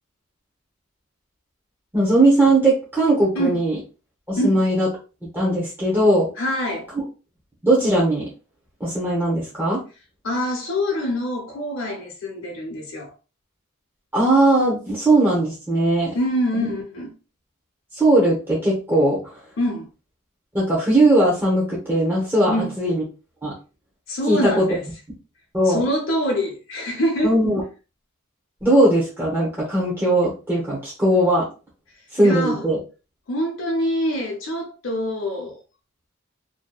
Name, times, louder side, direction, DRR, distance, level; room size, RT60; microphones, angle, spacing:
voice 1, 1.9-3.8 4.3-4.9 5.3-6.3 7.6-8.2 8.8-9.8 14.1-16.1 16.6-16.7 17.9-19.2 20.5-23.0 23.4-23.5 24.3-24.6 25.5-25.8 27.2-27.6 28.6-31.4 32.1-32.8, right 1 dB, 10° right, 0.7 m, -19 dB
voice 2, 6.4-6.9 10.2-13.1 16.1-17.1 19.6-19.9 22.5-22.7 24.1-24.8 25.7-27.4 32.2-32.7 33.3-35.6, equal, 70° left, 0.6 m, -25 dB
2.6 x 2.2 x 2.2 m
head